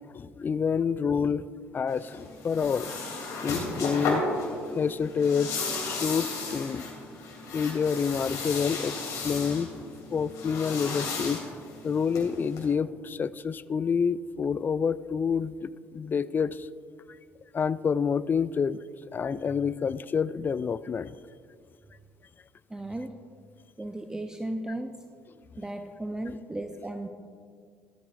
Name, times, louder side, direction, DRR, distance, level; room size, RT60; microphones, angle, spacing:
voice 1, 0.1-1.4 1.7-2.9 3.4-4.3 4.7-5.5 5.8-6.8 7.5-9.7 10.1-11.4 11.8-16.7 17.5-18.8 19.1-21.2, left 6 dB, 30° left, 18 dB, 0.3 m, -28 dB
sound 1, 1.9-12.6, left 3 dB, 60° left, 2.9 m, -34 dB
voice 2, 22.7-23.2 23.8-25.0 25.6-27.1, right 1 dB, 10° right, 6 dB, 0.6 m, -35 dB
14.5 x 13.0 x 2.5 m, 2.2 s
hypercardioid pair, 55°, 6 cm